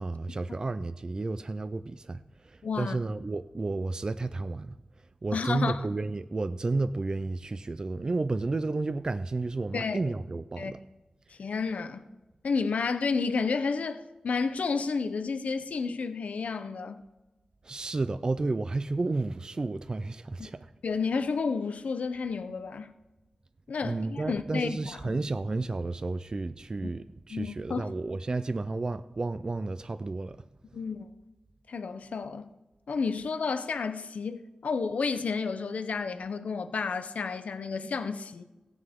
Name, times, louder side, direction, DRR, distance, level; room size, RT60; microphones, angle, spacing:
voice 1, 0.0-10.8 17.6-20.7 23.8-30.4, right 3 dB, 35° right, 0.3 m, -32 dB
voice 2, 2.6-3.0 5.3-5.8 9.7-10.0 10.6-10.7 11.4-12.0 12.4-17.0 20.4-20.5 20.8-22.9 23.7-25.2 27.3-27.8 30.7-31.1 31.7-32.5 32.9-38.4, left 5 dB, 80° left, 0.6 m, -31 dB
16.0 x 9.6 x 3.6 m
wide cardioid pair, 115°, 2 cm